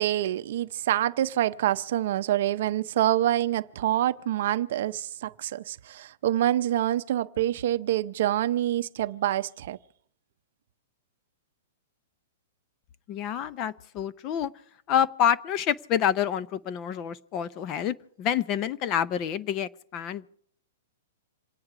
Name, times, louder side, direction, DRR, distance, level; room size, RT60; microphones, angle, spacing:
voice 1, 0.0-9.8, right 13 dB, 50° right, 0.6 m, -26 dB
voice 2, 13.1-14.5 14.9-20.3, left 9 dB, 25° left, 0.5 m, -27 dB
27.5 x 9.7 x 4.8 m
hypercardioid pair, 170°, 0 cm